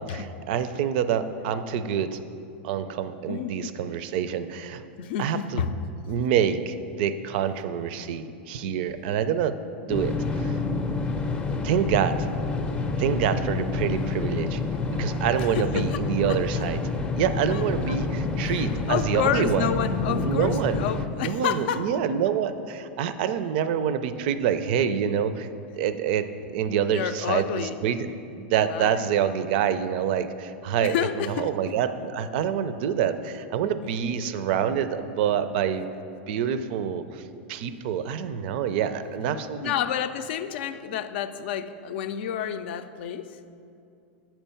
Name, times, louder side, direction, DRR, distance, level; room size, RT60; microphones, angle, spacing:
voice 1, 0.0-2.2 2.6-4.8 5.2-5.6 6.1-10.6 11.6-12.2 13.0-14.6 14.9-16.8 17.1-19.7 20.1-20.9 21.2-25.5 25.8-28.1 28.4-35.8 36.3-37.2 37.5-39.7, right 8 dB, 60° right, 12 dB, 0.4 m, -26 dB
voice 2, 3.3-3.8 5.0-5.7 15.4-16.0 16.3-16.7 17.5-18.0 18.4-21.9 26.9-27.9 28.7-29.0 30.8-31.7 39.6-43.3, left 9 dB, 70° left, 10 dB, 0.4 m, -30 dB
sound 1, 9.9-21.1, left 3 dB, 15° left, 0.5 m, -28 dB
7.0 x 4.5 x 6.9 m, 2.6 s
supercardioid pair, 125°, 6 cm